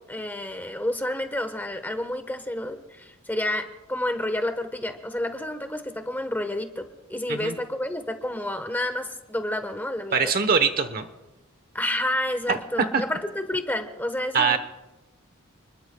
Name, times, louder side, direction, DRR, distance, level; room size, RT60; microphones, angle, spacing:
voice 1, 0.0-10.2 11.7-14.6, left 1 dB, 10° left, 7 dB, 1.2 m, -30 dB
voice 2, 10.1-11.1 12.5-12.6 12.9-13.0 14.3-14.6, right 5 dB, 45° right, 9 dB, 1.0 m, -22 dB
29.0 x 21.5 x 2.3 m, 1.1 s
head